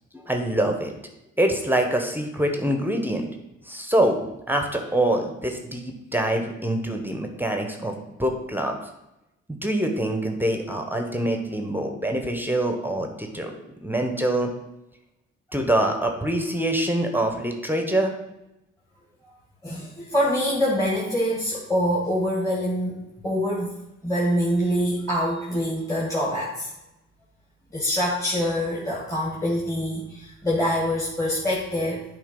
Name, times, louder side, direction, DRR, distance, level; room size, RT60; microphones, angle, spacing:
voice 1, 0.1-0.9 1.4-3.3 3.7-4.2 4.5-7.9 8.2-8.8 9.6-13.5 13.8-14.5 15.5-18.1, right 1 dB, 5° right, 4 dB, 1.1 m, -25 dB
voice 2, 19.6-23.7 24.0-26.7 27.7-32.0, equal, 10° left, -5 dB, 1.7 m, -25 dB
8.5 x 3.2 x 5.4 m, 0.88 s
cardioid pair, 65°, 32 cm